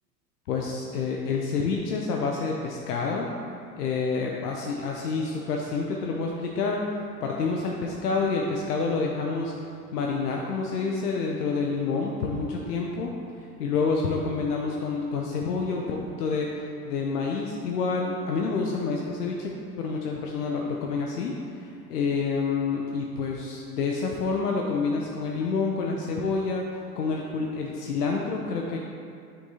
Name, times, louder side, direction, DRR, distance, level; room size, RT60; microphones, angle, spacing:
voice 1, 0.5-3.3 3.7-6.9 7.2-9.5 9.9-13.1 13.6-26.7 27.0-28.8, left 4 dB, 70° left, 0 dB, 0.8 m, -28 dB
9.6 x 6.0 x 2.8 m, 2.4 s
figure-of-eight pair, 80°, 49 cm